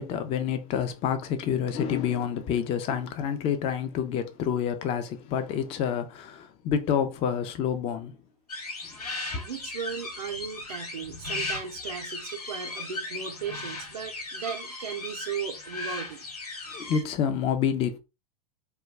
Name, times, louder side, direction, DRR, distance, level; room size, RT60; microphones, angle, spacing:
voice 1, 0.0-8.1 16.7-18.0, left 8 dB, 30° left, 0.4 m, -28 dB
sound 1, 8.5-17.0, left 3 dB, 85° left, 0.8 m, -37 dB
voice 2, 9.3-16.3, right 7 dB, 90° right, 0.4 m, -36 dB
2.2 x 2.2 x 3.2 m
hypercardioid pair, 105°, 19 cm